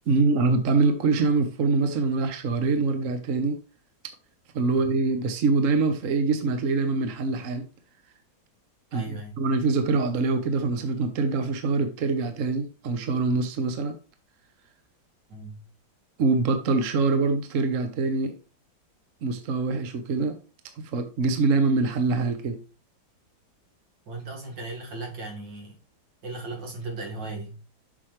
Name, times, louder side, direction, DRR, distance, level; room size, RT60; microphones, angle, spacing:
voice 1, 0.1-3.6 4.5-7.6 8.9-14.0 16.2-18.4 19.2-20.4 20.9-22.6, right 3 dB, 50° right, 1.2 m, -24 dB
voice 2, 8.9-9.5 15.3-15.7 24.1-25.8 26.2-27.6, right 2 dB, 70° right, 2.5 m, -37 dB
7.6 x 6.2 x 3.1 m
omnidirectional pair, 2.0 m